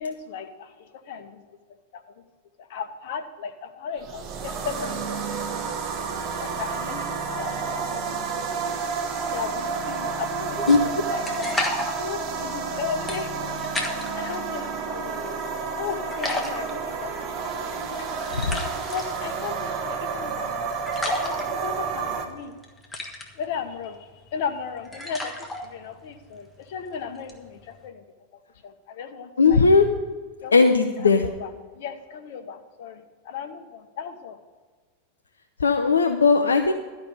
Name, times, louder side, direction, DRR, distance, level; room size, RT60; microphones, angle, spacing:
voice 1, 0.0-1.4 1.9-2.0 2.6-5.2 6.3-8.2 9.3-15.4 15.8-17.3 18.0-18.3 18.9-20.7 21.1-22.5 23.3-28.0 28.6-29.6 30.4-30.5 31.0-31.5 31.7-34.4, left 6 dB, 50° left, 8 dB, 0.9 m, -36 dB
sound 1, 4.0-22.3, right 5 dB, 35° right, 1.0 m, -30 dB
sound 2, 10.6-14.4 14.8-15.8 16.1-27.9, left 2 dB, 10° left, 1.4 m, -34 dB
voice 2, 29.4-29.9 30.5-31.3 35.6-36.7, left 4 dB, 70° left, 5 dB, 0.5 m, -18 dB
12.0 x 5.1 x 6.5 m, 1.4 s
figure-of-eight pair, 90°, 0 cm